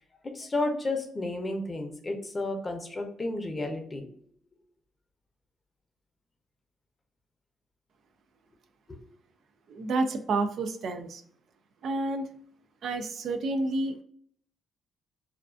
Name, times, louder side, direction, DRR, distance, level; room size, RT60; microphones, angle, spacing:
voice 1, 0.2-4.0 8.9-9.0, left 2 dB, 25° left, 3 dB, 0.6 m, -32 dB
voice 2, 9.7-11.2 11.8-12.3 12.8-14.0, right 2 dB, 65° right, 7 dB, 0.3 m, -29 dB
2.4 x 2.3 x 2.3 m, 0.63 s
cardioid pair, 90°, 0 cm